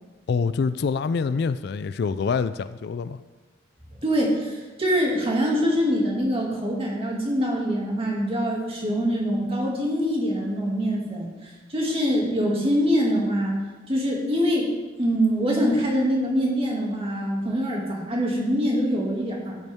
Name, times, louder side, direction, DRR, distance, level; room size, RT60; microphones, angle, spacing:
voice 1, 0.3-3.2, left 5 dB, 60° left, 13 dB, 0.3 m, -25 dB
voice 2, 4.0-13.6 13.9-14.7 15.0-19.6, equal, 30° right, -2 dB, 2.3 m, -24 dB
13.5 x 8.2 x 3.6 m, 1.2 s
head